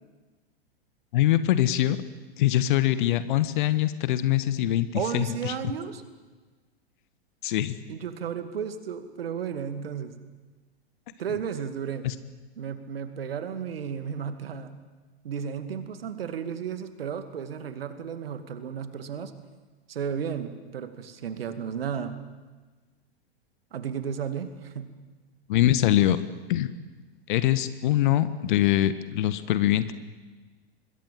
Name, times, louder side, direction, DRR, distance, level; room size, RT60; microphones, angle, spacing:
voice 1, 1.1-2.0 2.4-5.5 7.4-7.8 12.0-12.1 25.5-26.2 26.5-26.7 27.3-29.9, left 13 dB, 50° left, 14 dB, 1.6 m, -23 dB
voice 2, 4.9-6.0 7.9-10.1 11.2-12.1 12.6-14.8 15.2-19.3 19.9-22.2 23.7-24.9, right 7 dB, 65° right, 10 dB, 2.4 m, -33 dB
25.5 x 21.5 x 7.7 m, 1.3 s
figure-of-eight pair, 100°, 32 cm